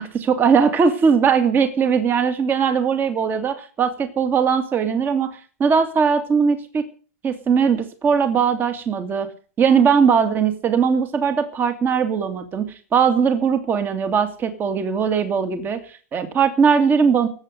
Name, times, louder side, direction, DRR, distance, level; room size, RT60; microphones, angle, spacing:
voice 1, 0.0-6.8 7.2-9.3 9.6-17.3, right 6 dB, 25° right, 8 dB, 2.3 m, -19 dB
19.0 x 8.0 x 7.7 m, 0.39 s
hypercardioid pair, 135°, 8 cm